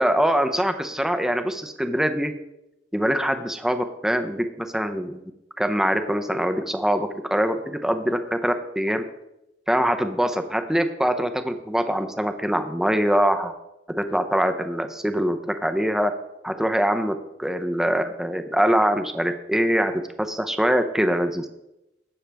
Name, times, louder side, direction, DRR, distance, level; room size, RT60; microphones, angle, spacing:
voice 1, 0.0-2.3 2.9-5.2 5.6-9.0 9.7-13.5 13.9-16.1 16.4-19.9 20.2-21.5, equal, 5° right, 7 dB, 0.7 m, -23 dB
17.0 x 6.4 x 3.4 m, 0.91 s
head